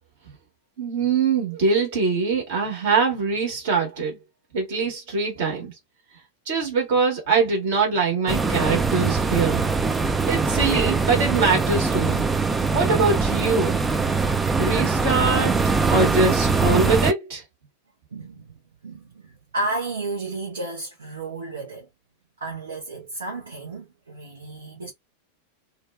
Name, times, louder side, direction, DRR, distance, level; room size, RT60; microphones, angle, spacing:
voice 1, 0.8-4.2 4.5-5.7 6.5-9.6 10.3-12.3 12.7-13.8 14.6-17.4, right 4 dB, 55° right, 1.2 m, -23 dB
sound 1, 8.3-17.1, right 4 dB, 15° right, 0.3 m, -22 dB
voice 2, 18.1-18.5 18.8-21.9 22.4-24.9, right 2 dB, 70° right, 0.8 m, -32 dB
2.5 x 2.3 x 2.3 m
figure-of-eight pair, 90°, 0 cm